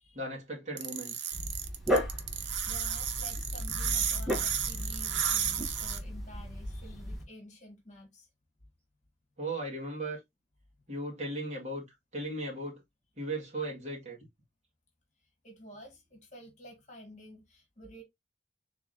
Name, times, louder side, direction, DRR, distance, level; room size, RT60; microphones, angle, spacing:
voice 1, 0.1-1.3 9.4-10.2 10.9-11.9 12.1-12.8 13.2-14.2, right 1 dB, 40° right, 1.8 m, -37 dB
sound 1, 0.8-6.0, right 9 dB, 90° right, 0.8 m, -32 dB
Dog, 1.3-7.2, equal, ahead, 1.1 m, -35 dB
voice 2, 2.6-8.3 15.4-18.0, left 1 dB, 40° left, 1.5 m, -50 dB
3.7 x 2.9 x 3.7 m
head